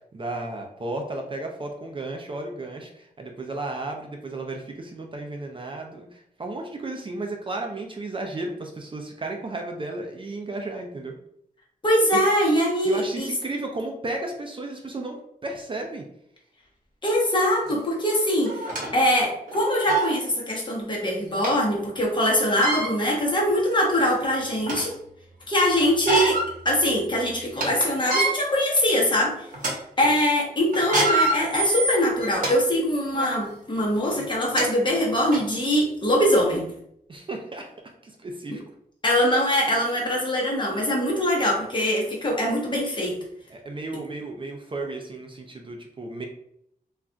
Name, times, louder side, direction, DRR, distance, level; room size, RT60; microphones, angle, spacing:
voice 1, 0.1-11.1 12.1-12.2 12.8-16.0 30.0-30.2 37.1-37.7 38.0-38.6 43.5-46.2, right 2 dB, 35° right, 2 dB, 0.4 m, -34 dB
voice 2, 11.8-13.3 17.0-24.9 25.5-29.5 30.0-36.7 39.0-43.2, equal, 30° left, -2 dB, 0.8 m, -23 dB
sound 1, 17.7-17.8 18.4-18.9 19.5-19.6 19.9-20.1 21.4-21.5 22.5-22.9 23.7-23.8 24.2-24.9 25.9-26.5 26.9-27.0 27.4-27.7 28.0-28.3 28.9-29.1 29.5-29.7 30.7-32.5 33.1-33.3 34.2-34.3 34.6-34.7 35.3-35.4, right 2 dB, 60° right, 0.9 m, -25 dB
2.3 x 2.2 x 3.7 m, 0.71 s
wide cardioid pair, 135°, 15 cm